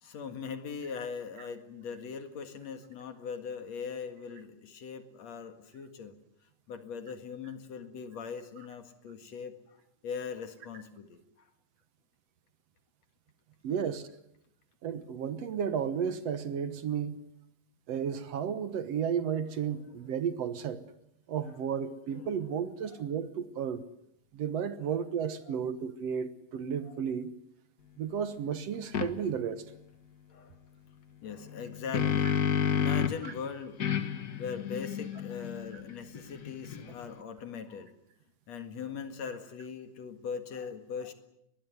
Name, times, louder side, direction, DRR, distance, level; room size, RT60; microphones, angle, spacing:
voice 1, 0.0-6.2 6.7-9.8 10.0-11.5 22.8-23.1 24.8-24.9 25.5-25.6 26.8-27.0 30.3-30.6 31.2-32.3 32.7-33.8 34.4-37.9 38.5-41.1, left 6 dB, 65° left, 3.0 m, -40 dB
voice 2, 13.6-14.1 14.8-17.2 17.9-20.8 21.3-23.8 24.3-27.3 28.0-29.6, right 7 dB, 65° right, 2.1 m, -33 dB
sound 1, 28.9-29.1 31.5-33.3 33.8-37.1, left 8 dB, 50° left, 1.2 m, -31 dB
23.0 x 20.5 x 9.4 m
omnidirectional pair, 3.4 m